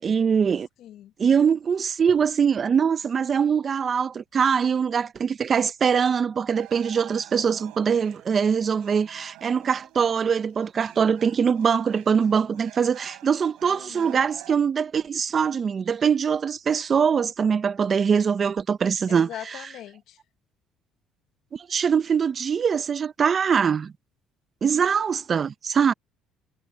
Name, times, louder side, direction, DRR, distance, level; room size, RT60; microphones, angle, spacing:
voice 1, 0.0-0.7 1.2-19.7 21.5-23.9 24.6-25.9, right 6 dB, 40° right, 0.8 m, -23 dB
voice 2, 0.8-1.1 13.8-14.2 19.1-20.1, left 12 dB, 70° left, 1.3 m, -40 dB
sound 1, 6.6-14.5, right 19 dB, 80° right, 5.5 m, -48 dB
supercardioid pair, 85°, 0 cm